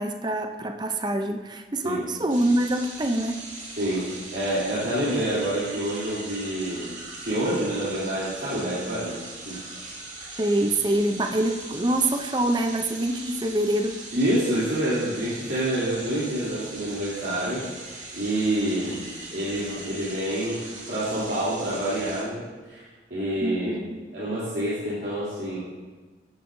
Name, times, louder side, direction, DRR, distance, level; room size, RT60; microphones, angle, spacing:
voice 1, 0.0-3.4 10.4-14.0 23.4-24.0, right 1 dB, 25° right, 6 dB, 0.5 m, -25 dB
sound 1, 2.3-22.2, right 2 dB, 45° right, 2.2 m, -40 dB
voice 2, 3.8-6.9 7.2-9.2 9.4-9.6 14.1-17.6 18.1-19.0 19.3-20.6 20.9-22.8 23.1-23.8 24.1-25.6, right 1 dB, 65° right, -11 dB, 3.1 m, -27 dB
13.5 x 10.5 x 2.7 m, 1.3 s
head